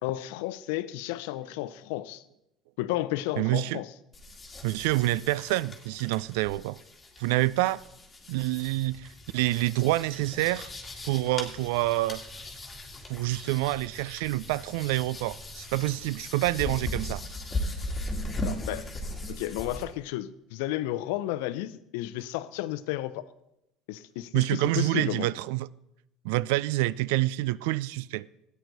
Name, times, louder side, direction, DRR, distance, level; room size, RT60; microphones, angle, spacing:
voice 1, 0.0-2.2 2.8-3.9 18.4-18.9 19.3-23.3 23.9-25.3, left 15 dB, 85° left, 0.5 m, -32 dB
voice 2, 3.4-3.8 4.6-6.8 7.2-7.8 8.3-10.7 11.0-12.2 13.1-17.2 24.3-25.7 26.2-28.3, right 18 dB, 85° right, 0.3 m, -27 dB
sound 1, 4.1-19.8, left 1 dB, 20° left, 2.3 m, -38 dB
sound 2, 8.3-16.1, right 1 dB, 5° right, 1.3 m, -53 dB
13.0 x 9.3 x 4.0 m
supercardioid pair, 95°, 0 cm